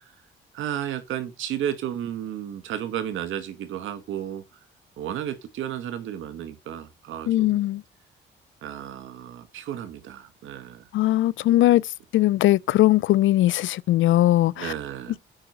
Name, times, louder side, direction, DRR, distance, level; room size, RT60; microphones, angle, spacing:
voice 1, 0.5-4.4 5.0-7.6 8.6-10.9 11.5-11.7 14.6-15.2, right 10 dB, 80° right, 2.0 m, -33 dB
voice 2, 7.3-7.8 10.9-11.8 12.1-14.7, left 15 dB, 75° left, 0.5 m, -20 dB
8.8 x 5.1 x 6.6 m
cardioid pair, 90°, 20 cm